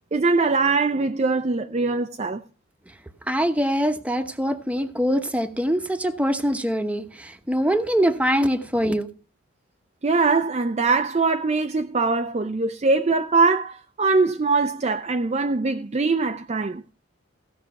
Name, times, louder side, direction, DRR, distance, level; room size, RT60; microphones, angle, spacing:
voice 1, 0.1-2.4 10.0-16.8, right 3 dB, 30° right, 0.5 m, -22 dB
voice 2, 3.3-9.1, equal, 5° right, 1.0 m, -23 dB
16.0 x 6.0 x 5.8 m
head